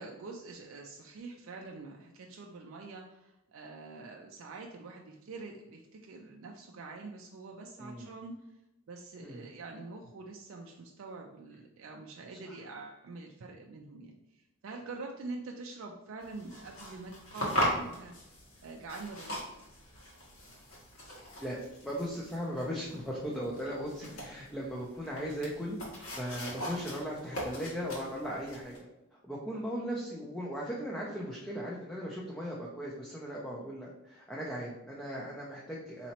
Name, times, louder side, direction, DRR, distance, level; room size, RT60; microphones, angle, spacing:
voice 1, 0.0-8.3 8.9-18.2 18.6-19.4 24.0-24.1, right 3 dB, 65° right, 1 dB, 0.4 m, -45 dB
sound 1, 16.2-28.8, equal, 70° left, 1.3 m, -39 dB
voice 2, 21.4-28.7 29.2-36.1, equal, 5° left, -5 dB, 0.4 m, -38 dB
4.2 x 2.9 x 2.9 m, 0.93 s
head